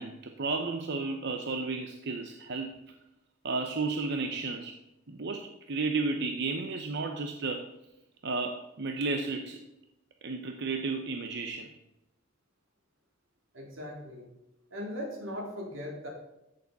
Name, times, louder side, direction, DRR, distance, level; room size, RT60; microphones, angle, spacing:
voice 1, 0.0-2.8 3.4-4.7 5.1-7.6 8.2-9.6 10.2-11.7, right 3 dB, 60° right, 5 dB, 0.8 m, -33 dB
voice 2, 13.5-14.3 14.7-16.1, left 1 dB, 90° right, -1 dB, 3.4 m, -39 dB
14.5 x 6.8 x 4.1 m, 0.91 s
head